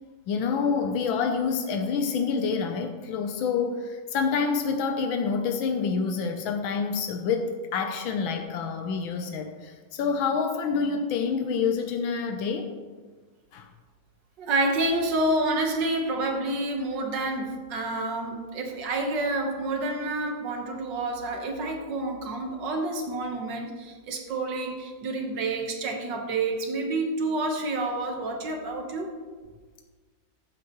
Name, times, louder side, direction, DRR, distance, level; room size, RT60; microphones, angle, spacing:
voice 1, 0.3-12.7 13.5-13.7, left 5 dB, 90° left, 5 dB, 1.6 m, -27 dB
voice 2, 14.4-29.1, right 2 dB, 65° right, 3 dB, 1.9 m, -28 dB
14.0 x 8.0 x 3.1 m, 1.4 s
omnidirectional pair, 2.1 m